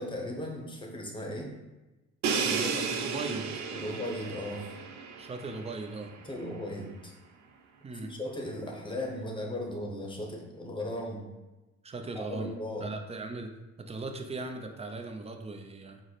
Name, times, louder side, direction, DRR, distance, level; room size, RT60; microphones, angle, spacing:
voice 1, 0.0-1.5 3.7-4.7 6.2-7.1 8.1-11.3 12.3-12.9, left 1 dB, 15° left, 1 dB, 0.8 m, -37 dB
Crash cymbal, 2.2-6.0, right 5 dB, 70° right, 0.5 m, -33 dB
voice 2, 2.3-3.7 5.2-6.1 7.8-8.1 11.8-12.5 12.8-13.5 13.8-16.0, right 3 dB, 20° right, 5 dB, 0.4 m, -38 dB
4.7 x 2.1 x 4.0 m, 1.1 s
cardioid pair, 90°, 30 cm